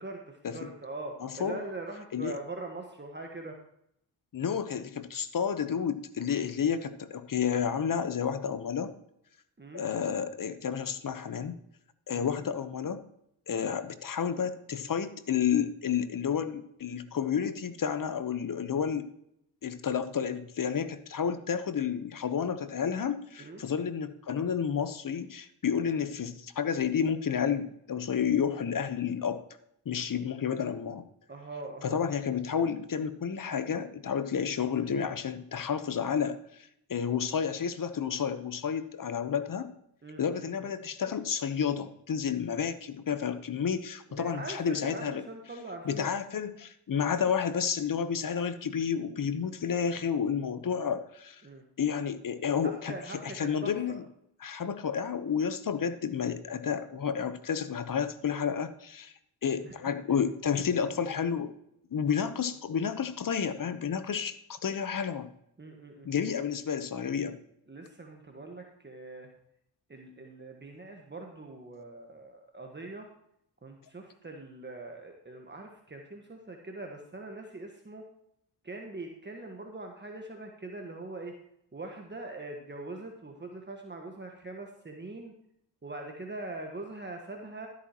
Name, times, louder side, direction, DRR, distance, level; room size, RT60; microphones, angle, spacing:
voice 1, 0.0-3.6 9.6-9.8 12.1-12.3 23.4-23.6 31.3-32.0 40.0-40.7 44.1-46.1 51.4-51.6 52.6-54.0 59.6-59.7 65.6-66.1 67.7-69.3 69.9-73.1 73.6-78.0 78.6-81.3 81.7-85.3 85.8-87.7, right 2 dB, 25° right, 2 dB, 1.5 m, -42 dB
voice 2, 1.2-1.6 2.1-2.4 4.3-8.9 9.7-11.6 12.1-13.0 13.5-19.1 19.6-29.4 29.9-31.0 31.8-39.7 40.2-45.2 45.8-51.4 51.8-52.9 53.2-54.0 54.4-59.1 59.4-61.5 61.9-65.3 66.0-67.4, left 7 dB, 45° left, 12 dB, 1.0 m, -31 dB
13.0 x 8.4 x 3.0 m, 0.75 s
supercardioid pair, 55°, 45 cm